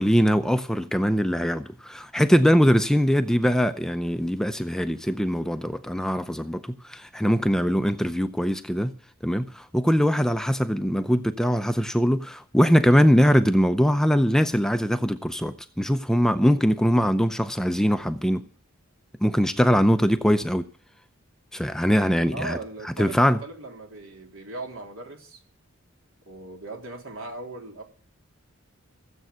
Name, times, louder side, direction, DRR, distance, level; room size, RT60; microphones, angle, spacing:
voice 1, 0.0-8.9 9.2-18.4 19.2-20.7 21.5-22.6 23.0-23.4, equal, 5° left, 0.6 m, -22 dB
voice 2, 22.3-25.4 26.3-27.8, right 2 dB, 70° right, 3.6 m, -38 dB
15.5 x 7.9 x 9.2 m
head